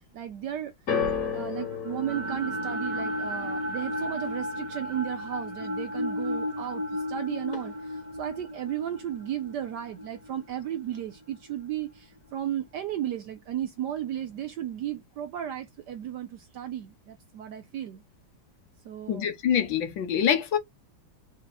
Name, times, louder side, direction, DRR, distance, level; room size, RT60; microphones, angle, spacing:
voice 1, 0.1-0.7 1.3-6.8 7.1-18.0 18.8-19.3, right 11 dB, 70° right, 1.0 m, -34 dB
sound 1, 0.9-7.1 7.4-8.1 8.8-8.9, left 6 dB, 45° left, 1.5 m, -36 dB
sound 2, 1.5-11.7, left 1 dB, 30° right, 0.6 m, -34 dB
voice 2, 19.1-20.6, left 8 dB, 70° left, 1.7 m, -25 dB
4.6 x 2.9 x 3.9 m
omnidirectional pair, 2.3 m